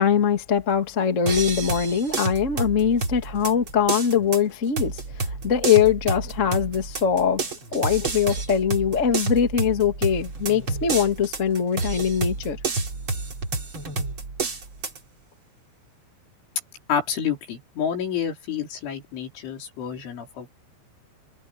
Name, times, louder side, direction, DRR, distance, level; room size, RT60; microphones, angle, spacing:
voice 1, 0.0-7.4 7.7-12.6, left 7 dB, 40° left, 1.1 m, -22 dB
sound 1, 1.3-15.0, right 3 dB, 30° right, 4.0 m, -30 dB
voice 2, 16.9-20.5, left 8 dB, 80° left, 6.9 m, -29 dB
omnidirectional pair, 5.4 m